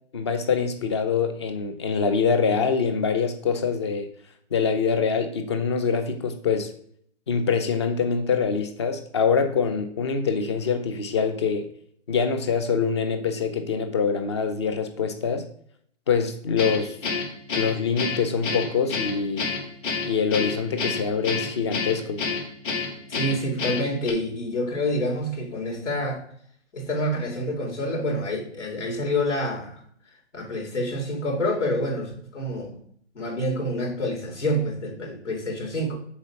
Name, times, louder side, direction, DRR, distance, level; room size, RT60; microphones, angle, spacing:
voice 1, 0.1-4.1 4.5-6.7 7.3-11.7 12.1-15.5 16.1-17.0 17.5-19.5 20.0-22.2, left 5 dB, 25° left, 0.6 m, -24 dB
Guitar, 16.6-24.1, left 4 dB, 45° left, 2.3 m, -29 dB
voice 2, 23.1-26.2 26.7-29.8 30.3-32.8 33.1-36.0, left 1 dB, 75° left, 3.7 m, -27 dB
7.1 x 4.2 x 5.7 m
hypercardioid pair, 155°, 36 cm